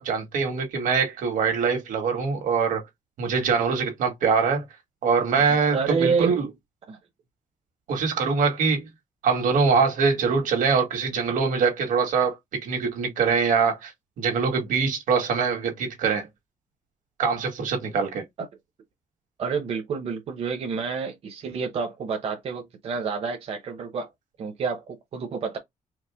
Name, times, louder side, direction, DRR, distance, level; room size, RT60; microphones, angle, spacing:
voice 1, 0.0-2.8 3.2-4.7 5.0-6.5 7.9-8.9 9.2-13.9 14.2-16.3 17.2-18.2, right 5 dB, 85° right, 1.9 m, -23 dB
voice 2, 5.3-6.3 6.9-7.0 18.4-18.5 19.4-24.1 24.4-25.6, right 5 dB, 50° right, 0.9 m, -29 dB
4.8 x 2.2 x 3.5 m
wide cardioid pair, 170°, 13 cm